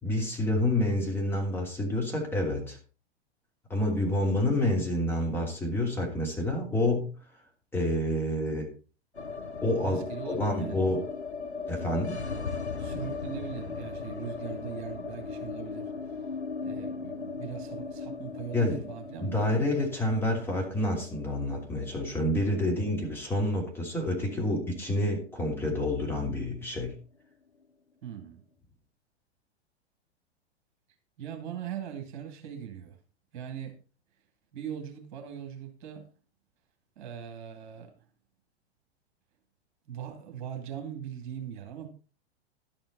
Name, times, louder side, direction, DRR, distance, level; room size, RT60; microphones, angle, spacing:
voice 1, 0.0-2.8 3.7-7.1 7.7-8.7 9.6-11.1 11.7-12.2 18.5-18.8 19.2-27.0, left 1 dB, 5° left, 3.0 m, -28 dB
sound 1, 9.1-25.3 25.5-25.6 25.9-26.6, left 4 dB, 85° left, 1.2 m, -38 dB
voice 2, 9.8-10.8 12.8-16.3 16.6-19.5 22.3-22.7 28.0-28.4 31.2-33.0 33.3-33.8 34.5-36.0 37.0-37.9 39.9-41.9, right 9 dB, 45° right, 2.5 m, -40 dB
12.0 x 8.8 x 4.0 m
figure-of-eight pair, 100°, 33 cm